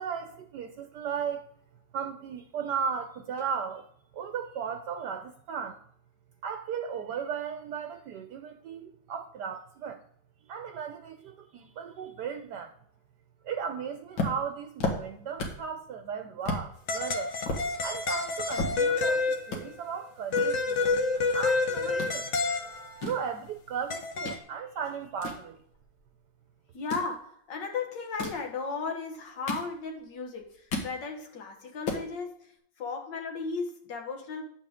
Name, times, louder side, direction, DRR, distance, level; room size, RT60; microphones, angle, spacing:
voice 1, 0.0-1.5 1.9-3.9 4.1-5.8 6.4-10.0 10.5-12.7 13.4-17.3 17.7-25.6, right 7 dB, 70° right, 1.2 m, -36 dB
sound 1, 14.1-15.7 16.0-16.1 16.4-16.7 17.1-19.1 19.4-19.6 20.3-21.5 21.8-22.1 22.7-24.4 24.8-26.1 26.7-27.1 28.0-28.5 29.1-30.1 30.4-31.0 31.4-31.5 31.7-32.1, left 2 dB, 85° left, 2.3 m, -34 dB
sound 2, 16.9-19.8 20.3-22.8 23.9-24.4, left 3 dB, 50° left, 0.9 m, -28 dB
voice 2, 26.7-34.4, left 4 dB, 70° left, 1.8 m, -35 dB
9.5 x 7.3 x 3.6 m
omnidirectional pair, 2.0 m